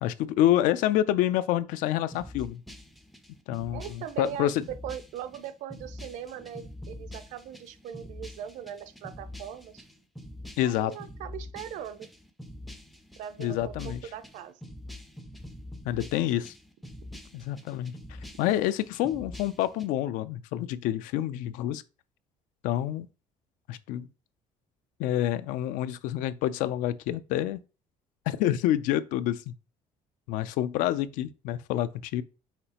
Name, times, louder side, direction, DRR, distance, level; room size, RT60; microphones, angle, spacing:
voice 1, 0.0-2.6 3.5-4.6 10.6-10.9 13.4-14.0 15.8-16.5 17.3-17.9 18.4-21.8 22.6-23.1 23.7-24.1 25.0-27.6 28.3-29.5 30.3-32.2, left 13 dB, 80° left, 0.4 m, -27 dB
sound 1, 2.1-19.9, left 1 dB, ahead, 0.3 m, -45 dB
voice 2, 3.7-4.5 4.8-9.9 10.6-12.1 13.2-14.6, right 10 dB, 65° right, 0.5 m, -40 dB
5.8 x 3.1 x 2.9 m
cardioid pair, 175°, 13 cm